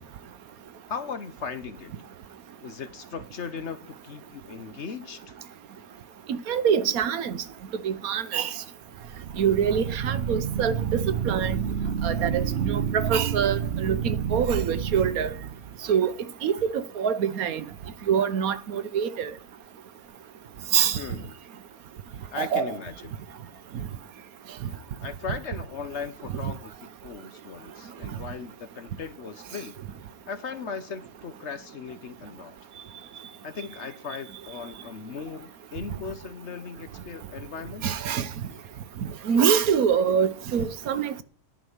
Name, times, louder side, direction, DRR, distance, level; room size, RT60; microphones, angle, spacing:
voice 1, 0.9-1.9 2.6-5.3 20.9-21.3 22.3-23.1 24.7-29.8 30.3-32.6 33.4-37.9, left 5 dB, 50° left, 1.1 m, -38 dB
voice 2, 6.3-7.4 7.8-8.5 9.4-11.6 12.0-15.3 15.9-16.1 16.4-17.6 18.1-19.3 20.7-21.0 22.4-22.7 37.8-38.3 39.3-41.2, right 7 dB, 70° right, 1.2 m, -25 dB
sound 1, 9.0-16.0, right 8 dB, 50° right, 0.9 m, -29 dB
11.0 x 5.4 x 7.8 m
omnidirectional pair, 1.6 m